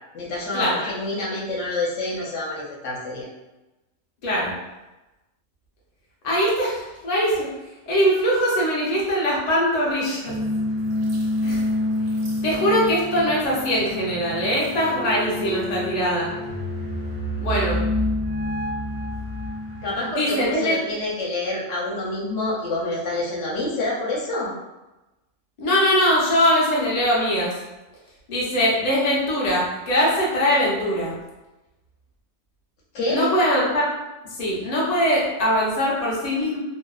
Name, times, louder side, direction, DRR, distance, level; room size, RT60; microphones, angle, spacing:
voice 1, 0.1-3.3 19.8-24.5 32.9-33.3, left 2 dB, 65° left, -5 dB, 0.9 m, -27 dB
voice 2, 4.2-4.6 6.2-7.5 7.9-10.3 11.4-11.7 12.4-16.3 17.4-17.9 20.0-20.8 25.6-27.5 28.3-31.2 33.1-33.9 34.2-36.6, equal, 45° left, -5 dB, 0.5 m, -22 dB
sound 1, 10.3-19.9, left 1 dB, 60° right, 0.7 m, -27 dB
2.7 x 2.0 x 2.3 m, 1.0 s
omnidirectional pair, 1.4 m